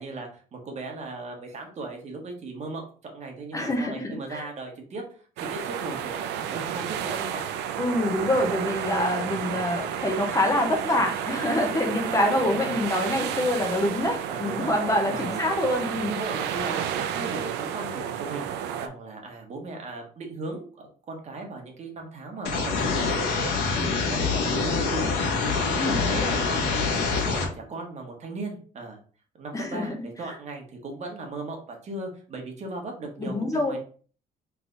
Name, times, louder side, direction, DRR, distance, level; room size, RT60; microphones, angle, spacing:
voice 1, 0.0-7.5 12.3-12.8 14.2-14.7 15.1-15.4 16.1-23.2 23.7-29.0 29.4-33.8, right 2 dB, 40° right, 2 dB, 1.3 m, -37 dB
voice 2, 3.5-4.5 7.8-16.2 25.8-26.3 29.5-29.9 33.2-33.7, left 1 dB, 20° left, 2 dB, 0.9 m, -26 dB
sound 1, 5.4-18.9, right 9 dB, 85° right, 0.5 m, -31 dB
sound 2, 22.4-27.4, left 4 dB, 80° left, 1.3 m, -25 dB
3.4 x 3.3 x 3.9 m, 0.41 s
cardioid pair, 110°, 17 cm